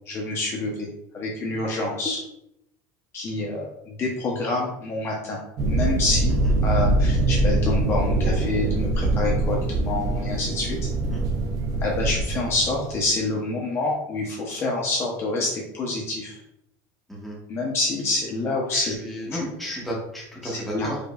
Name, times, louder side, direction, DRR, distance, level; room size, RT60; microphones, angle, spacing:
voice 1, 0.1-0.9 1.1-2.2 3.1-5.4 5.6-6.4 6.6-10.9 11.8-16.4 17.5-18.9 20.4-20.9, left 2 dB, 30° left, -3 dB, 0.7 m, -27 dB
sound 1, 5.6-13.1, right 2 dB, 45° right, 0.5 m, -23 dB
voice 2, 18.7-21.0, equal, ahead, -5 dB, 1.1 m, -33 dB
5.0 x 2.5 x 2.2 m, 0.77 s
cardioid pair, 145°, 8 cm